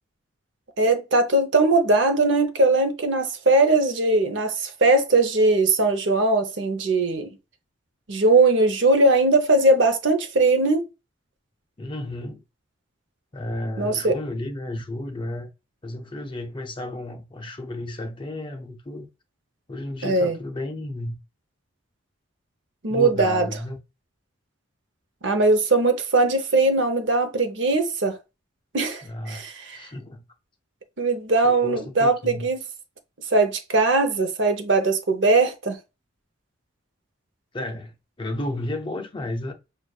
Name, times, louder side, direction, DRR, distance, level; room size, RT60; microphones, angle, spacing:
voice 1, 0.8-7.3 8.1-10.8 13.8-14.2 20.0-20.4 22.8-23.5 25.2-28.2 28.7-29.9 31.0-32.6 33.3-35.8, right 2 dB, 60° right, 0.7 m, -20 dB
voice 2, 11.8-12.4 13.3-15.5 15.8-19.1 19.7-21.2 22.9-23.8 29.0-29.5 29.7-30.2 31.4-32.5 37.5-39.5, left 1 dB, 25° left, 0.5 m, -32 dB
6.2 x 2.4 x 2.3 m
head